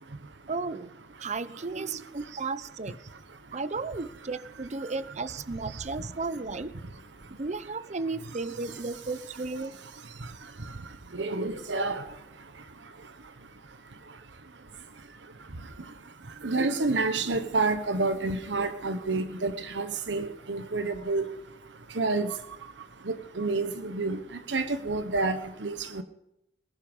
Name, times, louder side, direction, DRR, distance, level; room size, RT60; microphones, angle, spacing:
voice 1, 0.5-0.9 1.2-3.0 3.5-6.8 7.4-9.7, right 3 dB, 40° right, 15 dB, 0.7 m, -34 dB
voice 2, 11.2-12.0 16.4-21.2 22.0-22.3 23.1-24.2 24.5-26.0, right 3 dB, 85° right, 9 dB, 1.1 m, -28 dB
20.0 x 11.0 x 5.4 m, 0.85 s
head